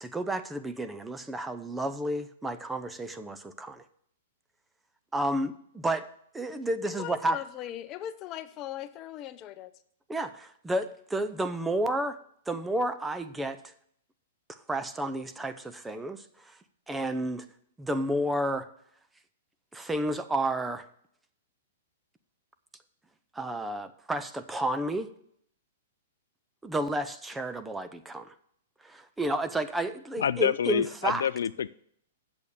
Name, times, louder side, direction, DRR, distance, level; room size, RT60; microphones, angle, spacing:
voice 1, 0.0-3.8 5.1-6.0 6.3-7.4 10.1-12.2 12.5-13.6 14.5-16.5 16.9-17.5 17.8-18.7 19.7-20.8 23.3-25.1 26.6-28.3 28.8-31.3, right 1 dB, 10° right, 0.7 m, -31 dB
voice 2, 6.8-9.7, left 11 dB, 35° left, 0.7 m, -39 dB
voice 3, 30.2-31.7, left 8 dB, 75° left, 0.3 m, -27 dB
8.3 x 7.0 x 6.8 m
hypercardioid pair, 125°, 0 cm